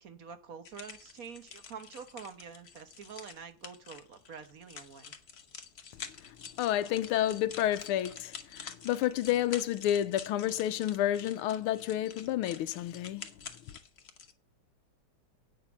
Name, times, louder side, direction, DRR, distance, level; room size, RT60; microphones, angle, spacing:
voice 1, 0.0-5.1, right 6 dB, 45° right, 1.3 m, -47 dB
sound 1, 0.6-14.3, left 6 dB, 45° left, 0.8 m, -48 dB
voice 2, 6.6-13.3, left 12 dB, 80° left, 1.6 m, -30 dB
8.9 x 6.6 x 7.2 m
omnidirectional pair, 2.4 m